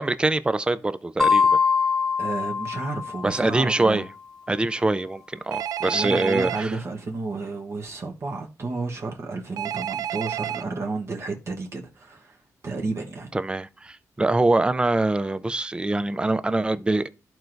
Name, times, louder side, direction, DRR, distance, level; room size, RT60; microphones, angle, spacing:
voice 1, 0.0-1.6 3.2-4.1 4.5-6.7 13.3-17.1, right 2 dB, 15° right, 0.4 m, -24 dB
sound 1, 1.2-3.7, left 5 dB, 5° left, 0.8 m, -23 dB
voice 2, 2.2-4.1 5.9-12.4 12.6-13.3, right 3 dB, 50° right, 1.1 m, -31 dB
Telephone, 5.5-6.6 9.6-10.6, right 10 dB, 85° right, 0.4 m, -30 dB
13.5 x 4.5 x 2.6 m
wide cardioid pair, 130°, 6 cm